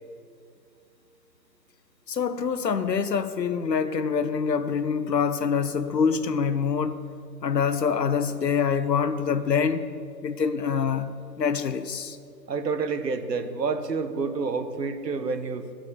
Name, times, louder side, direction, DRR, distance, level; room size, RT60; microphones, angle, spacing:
voice 1, 2.1-7.0 7.4-9.9 10.2-11.1 11.4-12.2, left 6 dB, 85° left, 11 dB, 0.9 m, -25 dB
voice 2, 12.5-15.7, right 4 dB, 80° right, 9 dB, 1.1 m, -28 dB
12.5 x 5.9 x 6.7 m, 2.3 s
figure-of-eight pair, 155°, 48 cm